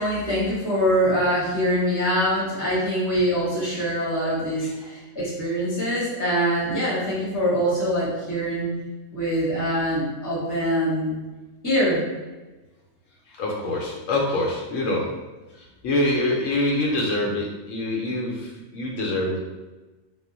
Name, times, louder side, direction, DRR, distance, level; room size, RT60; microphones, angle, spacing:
voice 1, 0.0-8.7 9.1-11.2 11.6-12.0, equal, 15° left, -7 dB, 0.8 m, -24 dB
voice 2, 13.3-15.1 15.6-19.4, left 1 dB, 75° left, -2 dB, 0.9 m, -25 dB
2.3 x 2.1 x 3.8 m, 1.2 s
omnidirectional pair, 1.3 m